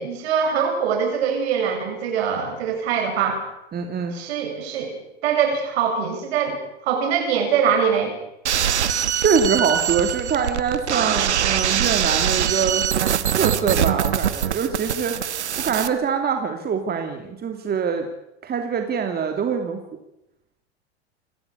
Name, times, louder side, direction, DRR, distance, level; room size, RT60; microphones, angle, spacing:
voice 1, 0.0-3.4 4.1-5.0 5.2-8.2, right 7 dB, 65° right, 4 dB, 7.6 m, -23 dB
voice 2, 3.7-4.2 9.2-12.8 13.3-15.2 15.5-18.0 18.4-19.8, right 6 dB, 30° right, 5 dB, 2.9 m, -24 dB
sound 1, 8.5-15.9, right 9 dB, 85° right, 1.4 m, -23 dB
27.5 x 13.5 x 8.5 m, 0.86 s
hypercardioid pair, 90°, 33 cm